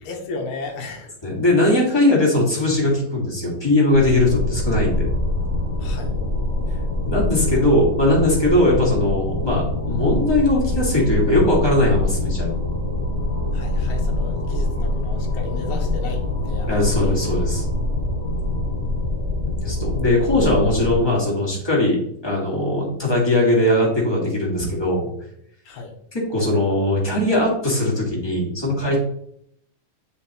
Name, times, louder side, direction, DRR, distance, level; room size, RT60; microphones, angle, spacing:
voice 1, 0.0-1.1 5.8-6.2 13.5-17.3 25.7-25.9, left 3 dB, 70° left, 2 dB, 2.2 m, -34 dB
voice 2, 1.2-5.1 7.0-12.5 16.7-17.6 19.6-22.0 22.2-25.1 26.1-29.0, left 1 dB, 15° left, -4 dB, 1.0 m, -20 dB
sound 1, 3.9-21.0, left 2 dB, 40° left, 2.5 m, -24 dB
7.7 x 4.9 x 3.0 m, 0.71 s
omnidirectional pair, 4.1 m